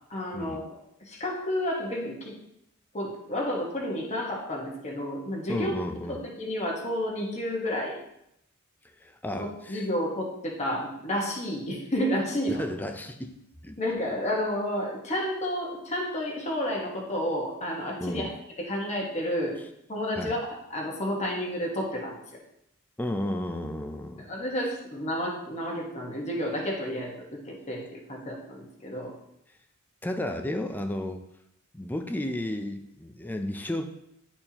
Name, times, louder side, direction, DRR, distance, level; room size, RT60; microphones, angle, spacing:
voice 1, 0.1-0.8 1.1-2.3 2.9-5.7 6.1-8.0 9.3-12.6 13.8-19.6 19.9-20.4 20.7-22.2 24.2-29.1, equal, 30° left, -2 dB, 1.3 m, -31 dB
voice 2, 5.5-6.2 9.0-9.9 12.5-13.8 18.0-18.3 20.2-20.3 23.0-24.2 30.0-31.2 31.7-33.8, left 1 dB, 10° left, 7 dB, 0.5 m, -33 dB
10.5 x 4.4 x 2.9 m, 0.81 s
head